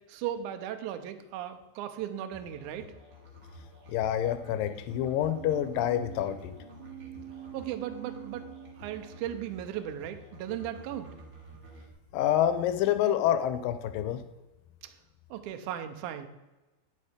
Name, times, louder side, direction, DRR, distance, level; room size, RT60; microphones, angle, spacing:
voice 1, 0.1-2.9 7.5-8.5 8.8-11.2 14.8-15.0 15.3-16.3, right 10 dB, 85° right, 8 dB, 1.8 m, -37 dB
Musical instrument, 2.3-11.9, equal, 40° right, 1.1 m, -51 dB
voice 2, 3.9-6.5 12.1-14.2, left 11 dB, 80° left, 11 dB, 2.0 m, -27 dB
sound 1, 4.9-10.4 11.0-11.3 12.5-12.6, right 12 dB, 65° right, 1.6 m, -47 dB
9.8 x 6.5 x 5.0 m, 1.1 s
omnidirectional pair, 4.4 m